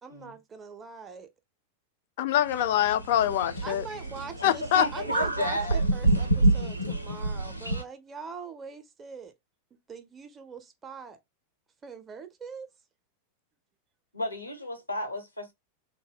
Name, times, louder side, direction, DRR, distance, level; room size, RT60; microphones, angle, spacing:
voice 1, 0.0-1.3 3.6-4.6 4.9-5.6 5.9-9.3 9.9-11.2 11.8-12.7, right 5 dB, 20° right, 0.4 m, -42 dB
voice 2, 2.2-3.8 4.4-4.8, left 11 dB, 50° left, 0.3 m, -24 dB
sound 1, 2.5-7.8, right 2 dB, 90° right, 0.4 m, -28 dB
voice 3, 4.4-5.9 14.1-15.5, equal, 85° left, 0.8 m, -33 dB
2.0 x 2.0 x 3.3 m
figure-of-eight pair, 90°, 0 cm